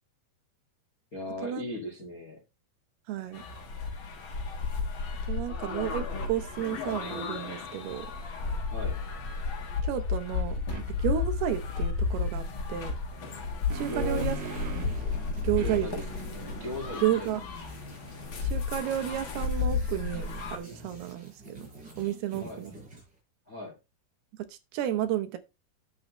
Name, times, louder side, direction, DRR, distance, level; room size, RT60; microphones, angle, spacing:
voice 1, 1.1-2.4 8.7-9.0 13.9-14.3 15.6-16.0 16.6-17.3 22.4-22.6 23.5-23.7, left 1 dB, 35° left, 1.5 m, -37 dB
voice 2, 3.1-3.4 5.3-8.1 9.8-10.6 10.9-12.9 13.7-14.4 14.7-14.9 15.4-15.9 17.0-17.4 18.4-21.6 22.0-22.7 24.5-25.4, right 11 dB, 75° right, 2.8 m, -32 dB
sound 1, 3.3-20.6, left 4 dB, 70° left, 1.1 m, -33 dB
sound 2, 10.7-10.9 13.3-15.0 15.6-18.9, right 5 dB, 60° right, 3.1 m, -43 dB
sound 3, 14.1-23.2, right 2 dB, 25° right, 5.1 m, -48 dB
10.5 x 7.4 x 3.1 m
omnidirectional pair, 4.7 m